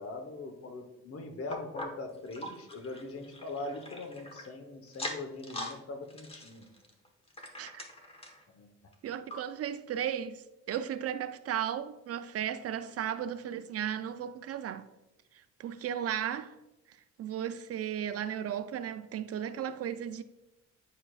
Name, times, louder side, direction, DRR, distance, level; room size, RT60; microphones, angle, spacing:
voice 1, 0.0-6.7 8.5-8.7, left 2 dB, 50° left, 1.1 m, -41 dB
sound 1, 1.5-4.5 4.9-5.8 6.1-8.4 8.9-9.0 9.3-9.4 10.0-10.1, left 1 dB, 20° left, 1.0 m, -42 dB
voice 2, 9.0-14.9 15.6-16.5 17.2-20.2, right 9 dB, 55° right, 0.4 m, -35 dB
9.6 x 4.7 x 2.4 m
cardioid pair, 90°, 30 cm